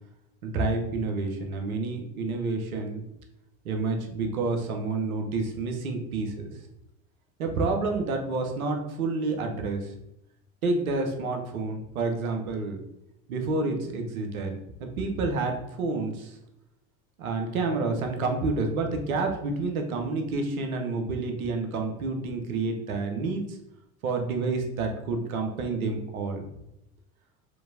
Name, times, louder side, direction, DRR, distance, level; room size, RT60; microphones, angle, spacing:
voice 1, 0.4-3.0 3.6-6.5 7.4-9.9 10.6-12.8 13.3-14.5 14.8-16.4 17.2-23.6 24.0-26.5, right 3 dB, 90° right, 3 dB, 0.7 m, -29 dB
4.5 x 2.6 x 2.6 m, 0.84 s
hypercardioid pair, 65°, 41 cm